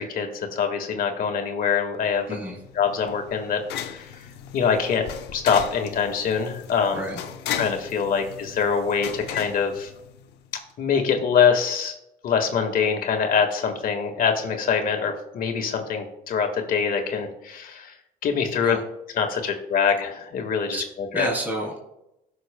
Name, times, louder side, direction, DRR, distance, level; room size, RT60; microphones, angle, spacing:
voice 1, 0.0-2.4 2.7-5.0 5.3-7.1 7.5-9.9 10.8-11.9 12.2-18.0 18.2-18.8 19.1-21.3, left 6 dB, 55° left, 4 dB, 1.7 m, -24 dB
sound 1, 2.1-10.5, left 9 dB, 85° left, 0.8 m, -37 dB
voice 2, 21.1-21.8, right 1 dB, 10° right, -3 dB, 3.3 m, -29 dB
18.0 x 6.3 x 2.2 m, 0.85 s
cardioid pair, 110°, 17 cm